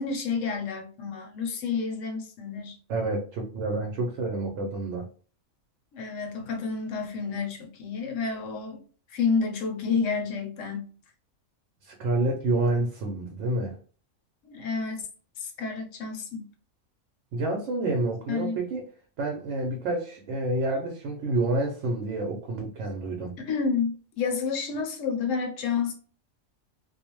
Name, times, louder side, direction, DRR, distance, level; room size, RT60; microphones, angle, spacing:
voice 1, 0.0-2.7 5.9-8.8 9.1-10.9 14.4-15.0 15.4-16.4 18.3-18.6 23.4-25.9, left 5 dB, 70° left, 1.0 m, -30 dB
voice 2, 2.9-5.1 11.8-13.8 17.3-18.9 19.2-23.4, right 2 dB, 70° right, 0.8 m, -28 dB
2.4 x 2.0 x 2.9 m
omnidirectional pair, 1.4 m